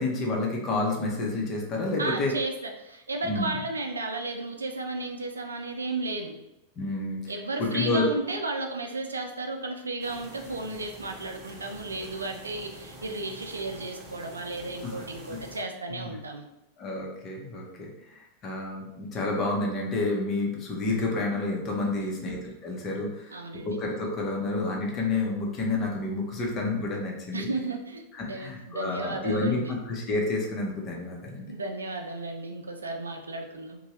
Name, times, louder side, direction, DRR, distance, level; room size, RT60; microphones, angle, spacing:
voice 1, 0.0-2.3 3.2-3.5 6.8-7.3 7.6-8.1 14.8-14.9 15.9-16.1 16.8-27.5 28.2-31.5, left 2 dB, 30° left, -1 dB, 0.7 m, -29 dB
voice 2, 2.0-6.4 7.3-16.4 22.0-22.4 23.3-23.8 27.3-28.0 28.3-29.8 31.5-33.8, right 2 dB, 75° right, 4 dB, 0.4 m, -34 dB
sound 1, 10.0-15.6, right 1 dB, 30° right, 0.9 m, -46 dB
2.7 x 2.2 x 3.0 m, 0.90 s
figure-of-eight pair, 90°, 0 cm